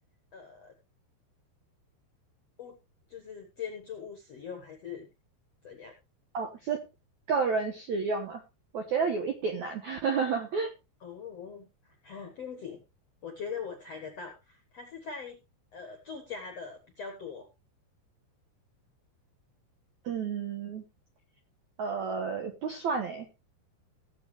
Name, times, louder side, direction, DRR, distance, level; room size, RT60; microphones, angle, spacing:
voice 1, 0.3-0.7 2.6-2.8 3.1-5.1 5.6-5.9 11.0-12.8 13.2-15.4 15.7-17.5, left 6 dB, 60° left, 5 dB, 1.7 m, -42 dB
voice 2, 6.3-6.8 7.3-8.4 8.7-10.7 20.1-20.8 21.8-23.3, right 5 dB, 80° right, 5 dB, 1.7 m, -30 dB
18.0 x 7.9 x 3.3 m, 0.26 s
omnidirectional pair, 5.2 m